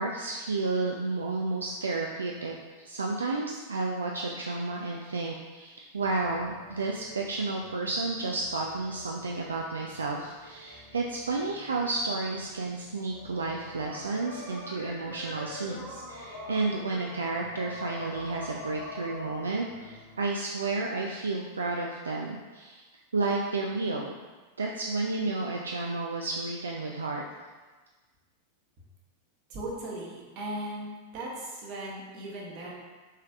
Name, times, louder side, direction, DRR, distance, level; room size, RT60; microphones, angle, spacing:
voice 1, 0.0-22.8 23.1-24.1 24.6-27.2, right 3 dB, 75° right, 0 dB, 0.3 m, -31 dB
sound 1, 6.0-20.2, left 2 dB, 55° left, 1.2 m, -46 dB
voice 2, 29.5-32.7, right 1 dB, 40° right, -3 dB, 1.1 m, -38 dB
5.5 x 3.3 x 2.4 m, 1.3 s
figure-of-eight pair, 90°, 0 cm